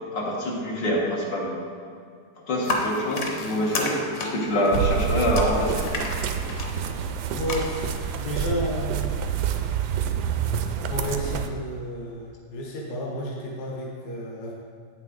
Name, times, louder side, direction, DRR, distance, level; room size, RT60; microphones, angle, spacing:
voice 1, 0.1-1.5 2.5-5.9, equal, 90° left, -4 dB, 2.1 m, -25 dB
sound 1, 2.6-7.6, left 2 dB, 50° left, 1.2 m, -32 dB
sound 2, 4.7-11.5, right 7 dB, 75° right, 1.1 m, -27 dB
voice 2, 7.3-9.1 10.3-14.5, equal, 65° left, -2 dB, 1.7 m, -32 dB
8.7 x 7.3 x 3.9 m, 2.2 s
omnidirectional pair, 1.8 m